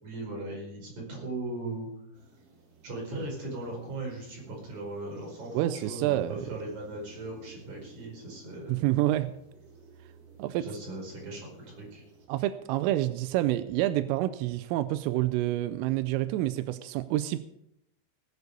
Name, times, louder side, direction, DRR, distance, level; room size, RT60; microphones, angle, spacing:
voice 1, 0.0-1.9 2.8-8.9 10.6-11.4 11.7-12.0, right 2 dB, 35° right, -2 dB, 6.0 m, -38 dB
sound 1, 2.1-12.3, right 4 dB, 60° right, 4.5 m, -54 dB
voice 2, 5.5-6.5 8.7-9.3 10.4-10.7 12.3-17.4, right 15 dB, 90° right, 13 dB, 3.3 m, -28 dB
18.5 x 8.3 x 6.7 m, 0.80 s
omnidirectional pair, 5.7 m